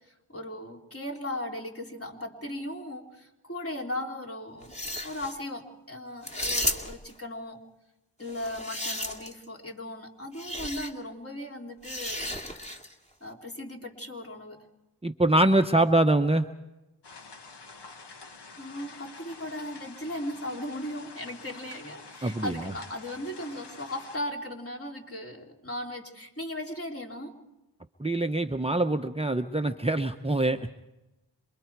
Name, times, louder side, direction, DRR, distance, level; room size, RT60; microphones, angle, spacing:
voice 1, 0.1-4.8 5.0-7.6 8.2-12.3 13.2-14.6 18.5-27.3, left 1 dB, 35° left, 0 dB, 3.4 m, -37 dB
sound 1, 4.6-5.3 6.2-7.1 8.3-9.4 10.4-10.9 11.8-12.9, left 1 dB, 15° left, 2.4 m, -33 dB
voice 2, 15.0-16.5 22.2-22.6 28.0-30.6, right 2 dB, 15° right, 6 dB, 0.8 m, -24 dB
sound 2, 17.0-24.2, left 4 dB, 75° left, 1.7 m, -47 dB
27.5 x 23.0 x 4.7 m, 0.99 s
cardioid pair, 50°, 41 cm